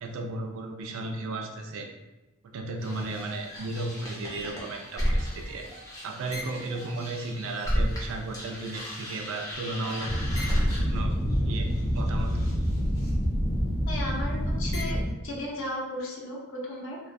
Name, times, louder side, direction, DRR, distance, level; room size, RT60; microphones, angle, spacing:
voice 1, 0.0-1.9 2.4-5.7 6.0-10.1 10.9-11.1 11.4-12.3, right 2 dB, 65° right, 3 dB, 0.3 m, -34 dB
sound 1, 2.8-8.1 8.3-15.1, equal, 15° left, 0.5 m, -29 dB
voice 2, 13.9-15.0 15.2-17.0, left 1 dB, 60° left, -4 dB, 0.6 m, -35 dB
2.2 x 2.2 x 2.5 m, 1.0 s
head